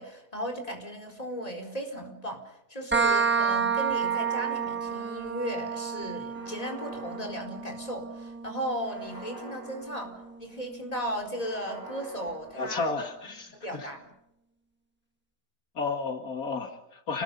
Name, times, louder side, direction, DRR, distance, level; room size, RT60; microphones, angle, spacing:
voice 1, 0.0-12.9 13.5-14.1, equal, 25° left, 2 dB, 4.4 m, -36 dB
sound 1, 2.9-10.3, right 6 dB, 10° right, 1.1 m, -30 dB
sound 2, 3.8-5.6 6.3-8.1 8.8-10.7 11.3-13.2, right 1 dB, 35° right, 4.5 m, -47 dB
voice 2, 12.5-13.5 15.8-17.2, left 4 dB, 80° left, 4 dB, 2.6 m, -32 dB
29.5 x 20.0 x 5.5 m, 0.82 s
omnidirectional pair, 1.5 m